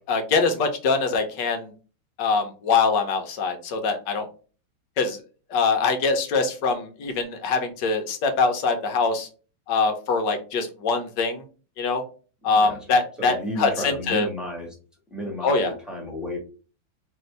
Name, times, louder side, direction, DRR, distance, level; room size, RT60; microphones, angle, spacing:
voice 1, 0.1-1.7 2.2-4.3 5.0-5.2 5.5-9.3 9.7-11.4 11.8-12.0 12.4-14.3 15.4-15.7, left 4 dB, 70° left, 6 dB, 1.4 m, -23 dB
voice 2, 12.5-12.8 13.2-14.7 15.1-16.4, left 1 dB, ahead, -2 dB, 1.0 m, -32 dB
4.2 x 2.6 x 3.2 m, 0.35 s
omnidirectional pair, 2.2 m